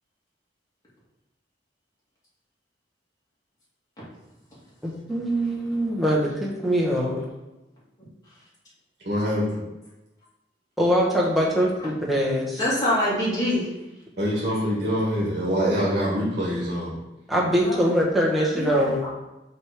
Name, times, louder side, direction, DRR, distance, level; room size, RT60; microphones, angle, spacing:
voice 1, 4.8-7.2 10.8-12.6 17.3-19.0, equal, ahead, -5 dB, 1.3 m, -23 dB
voice 2, 9.0-9.6 14.2-16.9, equal, 50° right, -5 dB, 1.7 m, -24 dB
voice 3, 12.6-13.7 17.6-17.9 18.4-19.1, left 1 dB, 20° left, -9 dB, 2.4 m, -25 dB
6.0 x 3.7 x 4.8 m, 0.99 s
head